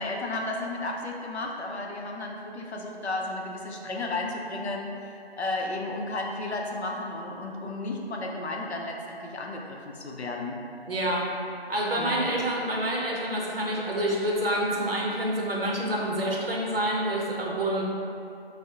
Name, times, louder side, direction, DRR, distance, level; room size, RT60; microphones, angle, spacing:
voice 1, 0.0-10.6 12.0-12.3, left 2 dB, 80° left, 0 dB, 0.5 m, -33 dB
voice 2, 10.9-11.2 11.7-17.8, right 1 dB, 60° right, -3 dB, 0.6 m, -27 dB
3.5 x 2.0 x 2.7 m, 2.6 s
figure-of-eight pair, 170°, 32 cm